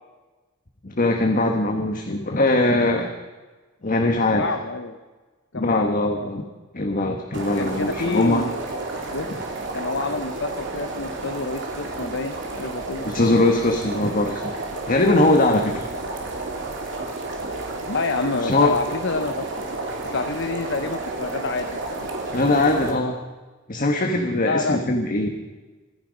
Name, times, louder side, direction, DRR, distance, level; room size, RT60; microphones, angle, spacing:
voice 1, 0.8-3.1 3.8-4.5 5.5-6.4 6.7-8.4 13.0-14.4 14.9-15.8 18.4-18.7 22.3-23.2 23.7-25.3, left 2 dB, 45° left, 4 dB, 1.3 m, -21 dB
voice 2, 4.3-5.0 5.5-5.9 7.5-8.5 9.1-13.1 17.9-19.4 20.0-22.1 24.4-24.8, left 3 dB, 60° left, 7 dB, 0.9 m, -28 dB
sound 1, 7.3-22.9, right 2 dB, 65° right, 3.0 m, -31 dB
25.0 x 10.5 x 5.2 m, 1.3 s
head